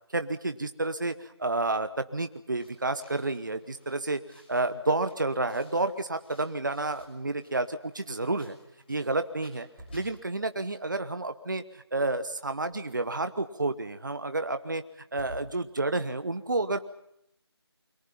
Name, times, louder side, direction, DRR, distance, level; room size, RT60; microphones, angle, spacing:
voice 1, 0.1-4.2 4.5-8.6 8.9-9.7 9.9-14.8 15.1-16.8, right 2 dB, 45° right, 10 dB, 1.1 m, -30 dB
sound 1, 2.6-10.1, left 1 dB, 20° left, 6.0 m, -60 dB
sound 2, 6.8-7.3 7.6-7.7 9.5-10.6 12.3-13.2 15.0-16.0, equal, 10° right, 6.7 m, -49 dB
29.0 x 23.5 x 5.7 m, 0.75 s
figure-of-eight pair, 165°, 14 cm